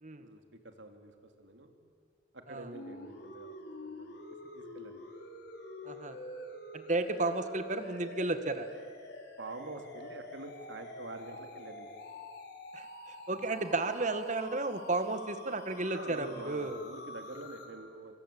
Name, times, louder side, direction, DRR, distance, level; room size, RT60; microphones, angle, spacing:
voice 1, 0.2-1.7 2.3-5.0 9.4-11.9 15.9-18.2, right 2 dB, 75° right, 5 dB, 2.9 m, -46 dB
sound 1, 2.7-17.7, left 1 dB, 60° left, 4.5 m, -47 dB
voice 2, 5.8-6.2 6.7-8.7 12.7-16.8, right 2 dB, 40° right, 9 dB, 1.8 m, -33 dB
26.5 x 25.5 x 8.6 m, 2.1 s
head